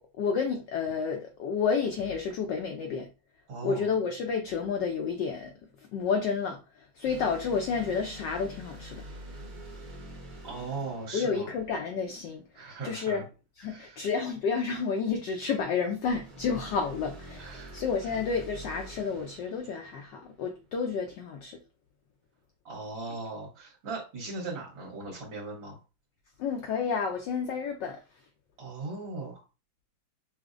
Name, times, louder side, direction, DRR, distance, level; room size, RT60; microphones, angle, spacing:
voice 1, 0.2-3.1 3.6-5.5 5.9-9.0 11.1-13.2 13.6-21.6 26.4-28.0, left 5 dB, 80° left, 1.0 m, -30 dB
voice 2, 3.5-3.9 10.4-11.5 12.5-13.2 13.6-14.1 17.3-18.2 22.7-25.8 28.6-29.4, right 3 dB, 65° right, 1.9 m, -39 dB
sound 1, 7.0-12.5 16.0-20.8, right 1 dB, 45° right, 0.6 m, -46 dB
5.8 x 2.0 x 2.5 m
omnidirectional pair, 2.4 m